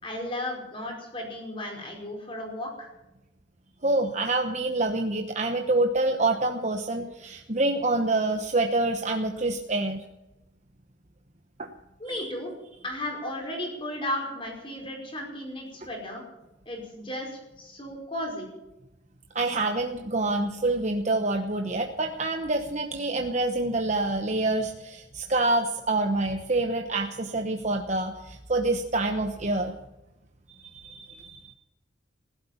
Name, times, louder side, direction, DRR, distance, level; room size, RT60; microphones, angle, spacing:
voice 1, 0.0-2.9 12.0-12.5 12.8-16.2 16.6-18.5, left 1 dB, 25° left, 1 dB, 4.8 m, -34 dB
voice 2, 3.8-10.0 11.6-11.7 12.1-12.3 19.3-29.7 30.5-31.5, right 2 dB, 35° right, 5 dB, 1.1 m, -27 dB
15.5 x 12.5 x 7.2 m, 0.96 s
head